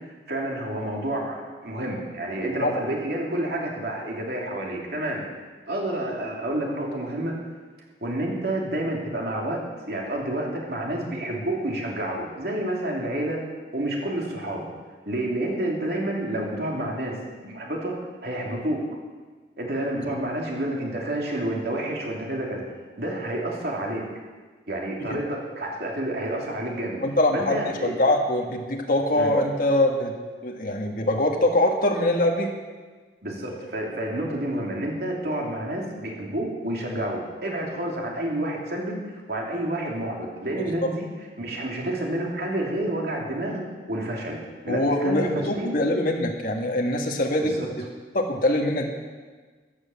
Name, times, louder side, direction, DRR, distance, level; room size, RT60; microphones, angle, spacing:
voice 1, 0.3-5.2 5.6-7.3 8.0-9.6 9.9-13.4 13.7-14.7 15.0-18.0 18.2-18.8 19.6-22.6 23.0-24.0 24.7-27.0 27.3-28.0 29.2-29.3 33.2-41.1 41.4-43.6 43.9-44.4 44.6-45.8 47.4-47.7, right 1 dB, 60° right, -2 dB, 3.1 m, -29 dB
voice 2, 27.0-30.1 30.4-32.5 44.7-47.6 48.1-48.9, left 1 dB, 50° left, 1 dB, 1.7 m, -23 dB
14.5 x 9.7 x 7.2 m, 1.4 s
head